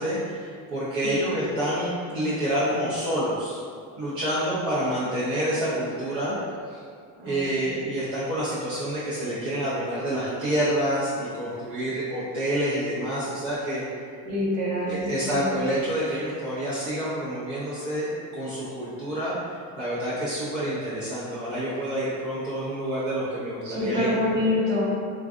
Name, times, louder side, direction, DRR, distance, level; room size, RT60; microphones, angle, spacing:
voice 1, 0.0-3.6 4.0-6.4 6.7-6.8 7.2-13.8 14.9-19.4 19.8-24.1 24.5-24.6, right 1 dB, 50° right, -10 dB, 0.7 m, -28 dB
voice 2, 14.2-15.5 23.6-24.8, left 1 dB, 90° right, -6 dB, 1.1 m, -26 dB
3.6 x 2.3 x 2.4 m, 2.3 s
cardioid pair, 175°, 36 cm